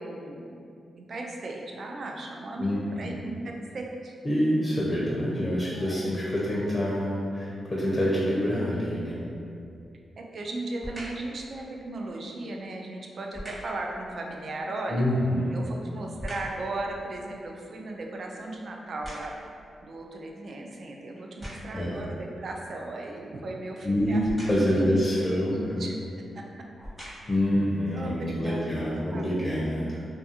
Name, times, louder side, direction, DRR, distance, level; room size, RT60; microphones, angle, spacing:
voice 1, 0.0-4.1 5.7-6.1 10.2-15.0 15.5-19.5 19.8-24.3 24.7-25.0 25.5-26.0 26.3-26.5 27.2-27.3 27.9-28.8 29.1-29.7, right 2 dB, 60° right, 0 dB, 0.3 m, -37 dB
voice 2, 2.6-3.2 4.2-9.2 14.9-15.6 21.7-22.0 23.8-25.9 27.3-30.0, equal, 30° left, -6 dB, 0.5 m, -26 dB
sound 1, 9.7-10.0 10.8-11.3 13.3-13.8 15.2-16.6 17.1-19.6 20.3-20.4 21.2-21.9 24.2-24.8 25.8-26.0 26.6-27.5 28.1-28.2, equal, 20° right, 0.9 m, -42 dB
2.4 x 2.4 x 2.7 m, 2.5 s
cardioid pair, 70°, 0 cm